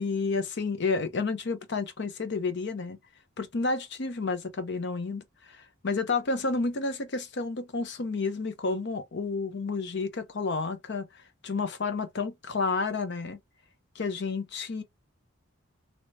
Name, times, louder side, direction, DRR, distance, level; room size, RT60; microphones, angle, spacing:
voice 1, 0.0-3.0 3.4-13.4 13.9-14.8, left 4 dB, 55° left, 0.7 m, -31 dB
3.2 x 2.9 x 2.6 m
head